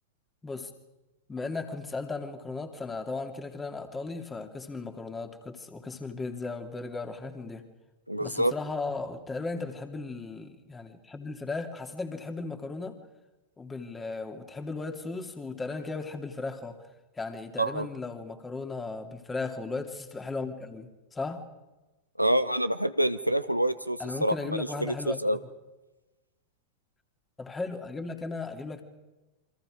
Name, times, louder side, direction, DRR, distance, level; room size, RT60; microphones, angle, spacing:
voice 1, 1.3-7.6 8.2-13.0 13.6-16.8 17.2-21.5 24.0-25.3 27.4-28.8, left 3 dB, 15° left, 5 dB, 2.7 m, -36 dB
voice 2, 8.1-8.5 17.6-17.9 22.2-24.9 25.2-25.4, right 1 dB, 90° right, 11 dB, 0.9 m, -27 dB
28.5 x 25.0 x 5.1 m, 1.1 s
figure-of-eight pair, 90°, 0 cm